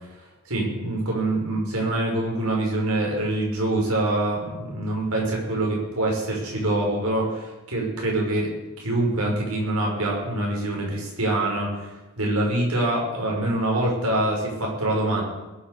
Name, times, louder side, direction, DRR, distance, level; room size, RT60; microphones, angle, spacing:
voice 1, 0.5-8.5 8.8-15.2, right 1 dB, 85° right, -1 dB, 6.0 m, -25 dB
21.0 x 7.6 x 7.0 m, 1.1 s
head